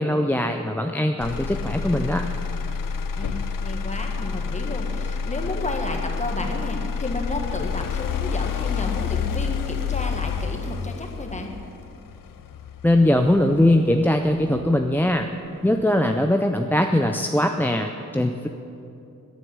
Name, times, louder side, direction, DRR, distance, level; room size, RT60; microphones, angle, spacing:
voice 1, 0.0-2.2 12.8-15.3 15.6-18.5, left 1 dB, 5° left, 4 dB, 0.4 m, -21 dB
Motor vehicle (road), 1.2-15.2 15.7-16.2, left 6 dB, 85° left, 0.6 m, -29 dB
voice 2, 3.1-11.5, left 2 dB, 20° left, 2 dB, 1.4 m, -32 dB
11.0 x 9.3 x 8.1 m, 2.6 s
wide cardioid pair, 150°, 32 cm